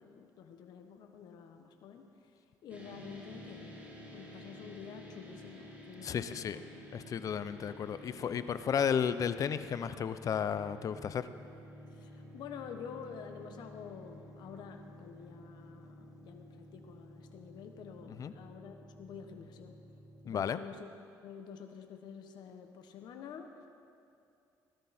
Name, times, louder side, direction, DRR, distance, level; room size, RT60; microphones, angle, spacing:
voice 1, 0.0-2.0 2.6-6.6 12.0-19.8 20.2-20.9 21.2-23.7, left 6 dB, 70° left, 5 dB, 1.3 m, -48 dB
sound 1, 2.7-20.5, equal, 20° right, 3.0 m, -52 dB
voice 2, 6.0-6.6 6.9-11.3 18.2-18.3 20.3-20.6, left 7 dB, 50° left, 13 dB, 0.6 m, -33 dB
18.0 x 13.0 x 4.3 m, 2.6 s
cardioid pair, 95°, 8 cm